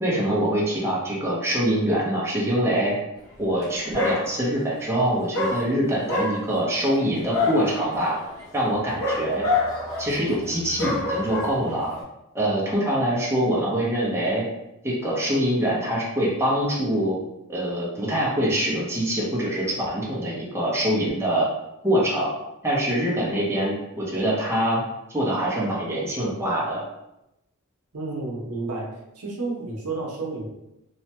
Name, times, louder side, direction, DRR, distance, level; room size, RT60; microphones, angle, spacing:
voice 1, 0.0-3.0 3.4-8.2 8.5-9.5 10.0-11.9 12.3-14.4 14.8-17.2 17.5-21.5 21.8-22.3 22.6-24.8 25.1-26.8, right 1 dB, 10° right, -6 dB, 0.7 m, -24 dB
Dog, 3.5-3.7 3.9-4.7 5.3-12.0, left 3 dB, 65° left, 1.0 m, -28 dB
voice 2, 27.9-28.9 29.2-30.5, right 3 dB, 80° right, -2 dB, 0.8 m, -31 dB
3.2 x 2.2 x 2.8 m, 0.88 s
head